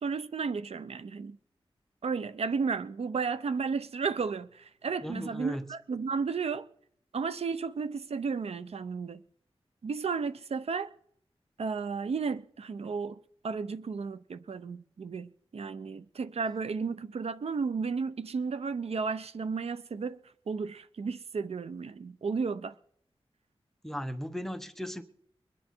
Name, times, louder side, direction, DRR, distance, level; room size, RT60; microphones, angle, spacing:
voice 1, 0.0-1.4 2.0-6.7 7.1-9.2 9.8-10.9 11.6-13.2 13.4-20.2 20.5-22.7, right 5 dB, 85° right, 0.7 m, -33 dB
voice 2, 5.0-5.6 23.8-25.0, equal, 5° left, 1.0 m, -36 dB
23.0 x 9.8 x 4.5 m
wide cardioid pair, 110°, 10 cm